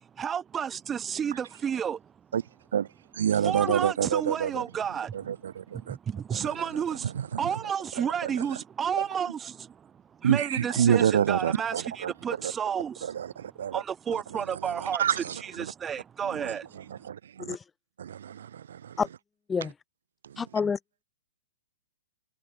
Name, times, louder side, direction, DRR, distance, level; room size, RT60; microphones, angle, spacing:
voice 1, 0.0-2.1 3.3-5.3 5.7-15.0 15.4-16.8, right 8 dB, 20° right, 1.3 m, -32 dB
voice 2, 3.1-4.6 5.3-6.0 6.3-6.4 7.3-7.4 8.2-8.3 10.2-12.1 13.0-13.8 14.6-15.3 16.4-16.5 17.0-17.6 18.0-19.0, right 9 dB, 70° right, 0.6 m, -27 dB
voice 3, 20.4-20.8, left 5 dB, 15° left, 0.4 m, -28 dB
hypercardioid pair, 125°, 0 cm